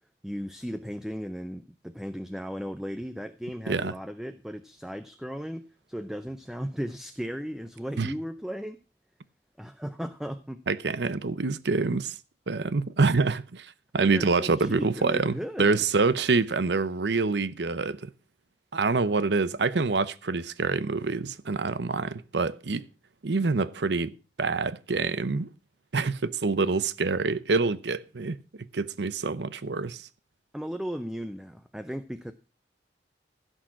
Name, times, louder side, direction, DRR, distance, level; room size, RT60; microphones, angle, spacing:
voice 1, 0.2-8.8 9.6-10.6 14.0-15.8 30.5-32.3, equal, 5° right, 0.6 m, -36 dB
voice 2, 10.7-12.2 12.5-18.1 18.7-22.8 23.2-24.1 24.4-25.5 25.9-28.4 28.7-30.1, right 4 dB, 75° right, 0.7 m, -26 dB
16.0 x 6.4 x 5.9 m
head